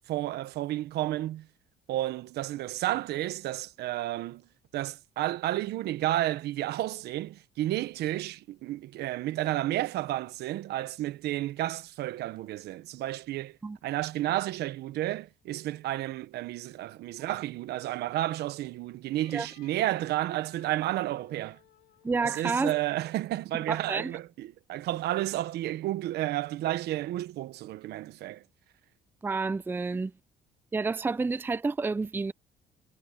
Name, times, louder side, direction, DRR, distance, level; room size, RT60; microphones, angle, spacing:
voice 1, 0.1-1.5 1.9-4.5 4.7-21.6 22.2-28.4, right 15 dB, 75° right, 1.1 m, -31 dB
Wind instrument woodwind instrument, 19.2-23.3, left 14 dB, 80° left, 4.1 m, -60 dB
voice 2, 22.0-22.7 23.7-24.1 29.2-30.1 30.7-32.3, right 4 dB, 10° right, 0.5 m, -29 dB
cardioid pair, 110°, 17 cm